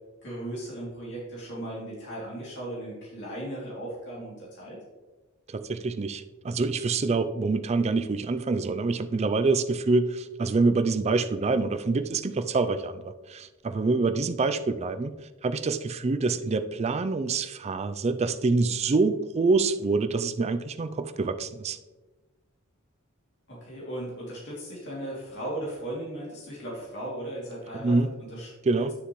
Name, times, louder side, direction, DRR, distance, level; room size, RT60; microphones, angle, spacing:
voice 1, 0.2-4.8 23.5-28.0 28.3-28.5 28.8-28.9, right 1 dB, 55° left, -5 dB, 2.8 m, -37 dB
voice 2, 5.5-15.1 15.4-21.8 27.7-28.1 28.6-28.9, right 3 dB, 30° right, 10 dB, 0.4 m, -26 dB
9.5 x 6.8 x 3.1 m, 1.2 s
head